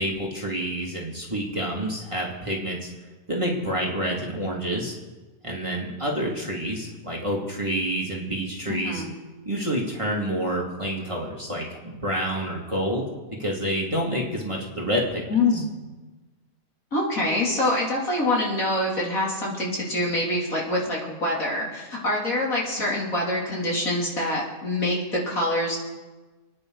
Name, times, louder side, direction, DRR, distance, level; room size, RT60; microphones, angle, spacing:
voice 1, 0.0-2.9 3.3-4.9 5.4-9.0 9.5-13.0 13.3-15.2 15.5-15.6, equal, 20° right, -3 dB, 2.5 m, -28 dB
voice 2, 8.7-9.1 15.3-15.7 16.9-25.8, left 1 dB, 65° left, -4 dB, 3.6 m, -25 dB
29.5 x 9.9 x 4.0 m, 1.2 s
omnidirectional pair, 1.6 m